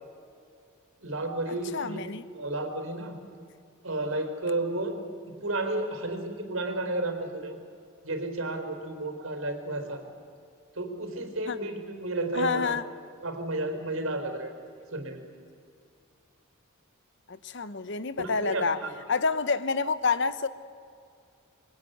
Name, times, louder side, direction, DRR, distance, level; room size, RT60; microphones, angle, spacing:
voice 1, 1.0-3.1 3.8-5.0 5.3-7.6 8.0-10.0 10.7-12.8 13.2-14.5 14.9-15.2 18.2-18.9, right 2 dB, 70° right, 4.2 m, -32 dB
voice 2, 1.7-2.2 11.5-11.6 12.3-12.8 17.3-18.8 19.1-20.5, left 4 dB, 55° left, 1.0 m, -28 dB
26.5 x 23.5 x 9.3 m
head